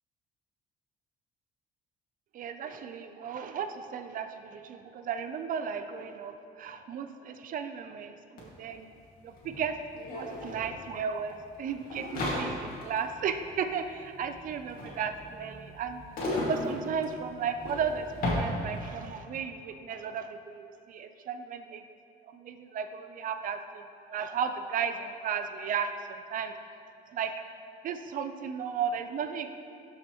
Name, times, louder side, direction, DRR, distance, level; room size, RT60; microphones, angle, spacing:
voice 1, 2.3-8.9 9.2-9.8 10.1-16.0 16.5-21.8 22.2-26.5 27.1-27.3 27.8-29.5, right 7 dB, 55° right, 8 dB, 0.5 m, -35 dB
sound 1, 8.4-8.5 8.7-19.1, left 1 dB, 60° left, 2.0 m, -36 dB
12.5 x 5.6 x 3.0 m, 2.5 s
cardioid pair, 110°, 17 cm